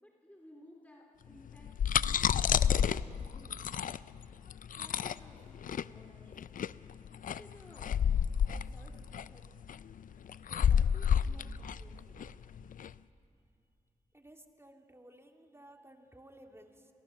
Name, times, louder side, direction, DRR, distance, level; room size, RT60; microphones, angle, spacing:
voice 1, 0.0-2.2 2.5-3.6 4.7-6.6 7.3-8.1 8.5-9.0 9.3-9.4 10.5-12.2, left 1 dB, 10° left, 0 dB, 3.4 m, -57 dB
sound 1, 1.5-12.9, left 8 dB, 70° left, 0.4 m, -30 dB
voice 2, 14.1-16.9, right 1 dB, 20° right, 3 dB, 2.7 m, -56 dB
29.0 x 18.5 x 6.5 m, 2.4 s
cardioid pair, 50°, 14 cm